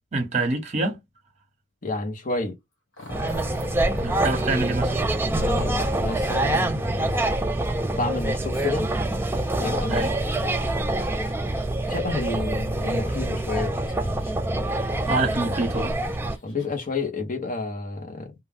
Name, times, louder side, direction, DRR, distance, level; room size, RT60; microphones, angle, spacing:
voice 1, 0.1-1.0 4.0-5.0 9.9-10.1 15.1-15.9, right 2 dB, 35° right, 0.9 m, -25 dB
voice 2, 1.8-2.6 5.4-7.2 7.9-8.9 9.6-10.1 10.3-10.8 11.9-14.2 16.4-18.3, left 3 dB, 45° left, 0.8 m, -30 dB
Growling, 2.9-4.6 5.3-5.9 8.5-13.3 13.8-14.6 15.1-15.2 15.9-16.9, left 2 dB, 90° left, 1.2 m, -46 dB
sound 1, 3.1-16.4, right 1 dB, 10° right, 0.3 m, -25 dB
2.3 x 2.2 x 3.3 m
head